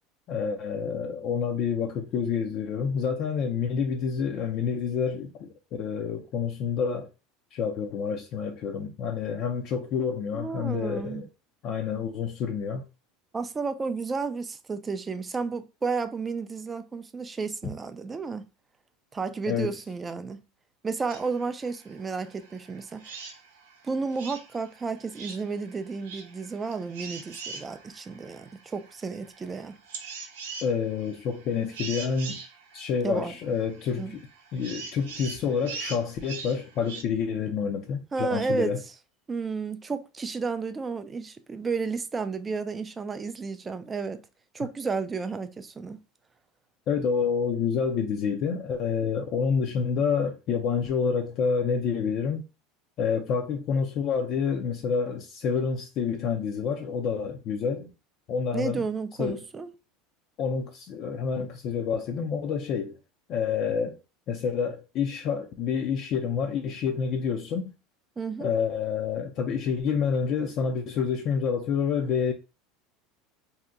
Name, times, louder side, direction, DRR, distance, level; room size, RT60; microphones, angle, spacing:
voice 1, 0.3-7.1 7.5-11.2 11.6-12.8 19.5-19.7 30.6-32.4 32.7-34.2 34.5-38.8 46.9-52.5 53.0-57.9 58.3-58.8 59.2-59.4 60.4-63.0 63.3-64.0 64.3-67.7 68.4-72.3, left 6 dB, 50° left, 0.5 m, -28 dB
voice 2, 10.3-11.3 13.3-18.5 19.1-20.4 20.8-23.2 23.8-29.8 33.0-33.3 34.0-34.2 38.1-38.7 39.3-44.2 44.5-46.0 58.5-59.7 68.2-68.5, right 4 dB, 20° right, 0.4 m, -32 dB
sound 1, 21.1-37.0, right 5 dB, 90° right, 0.6 m, -43 dB
2.7 x 2.1 x 3.6 m
supercardioid pair, 120°, 0 cm